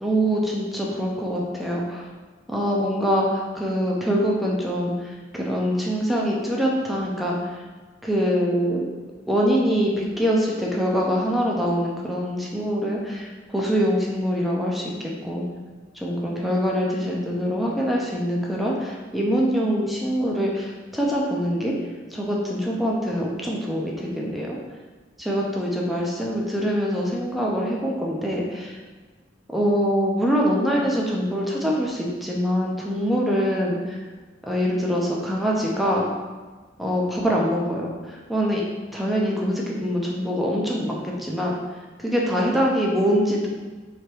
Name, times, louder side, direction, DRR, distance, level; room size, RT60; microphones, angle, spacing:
voice 1, 0.0-2.1 2.5-7.5 8.0-8.9 9.3-15.4 15.9-21.7 22.1-24.6 25.2-28.8 29.5-34.0 34.5-36.1 36.8-38.6 38.9-41.5 42.0-43.5, equal, ahead, -3 dB, 0.6 m, -24 dB
3.5 x 3.3 x 4.5 m, 1.4 s
head